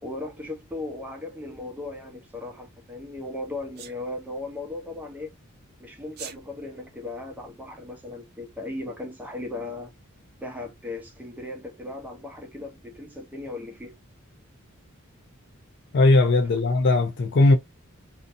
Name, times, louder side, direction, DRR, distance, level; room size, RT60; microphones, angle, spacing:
voice 1, 0.0-5.3 5.8-9.9 10.4-14.0, left 2 dB, 10° right, 0.8 m, -37 dB
Sneeze, 3.8-4.0 6.1-6.4, right 8 dB, 50° right, 0.5 m, -39 dB
voice 2, 15.9-17.5, left 2 dB, 55° left, 0.5 m, -18 dB
2.6 x 2.3 x 2.6 m
head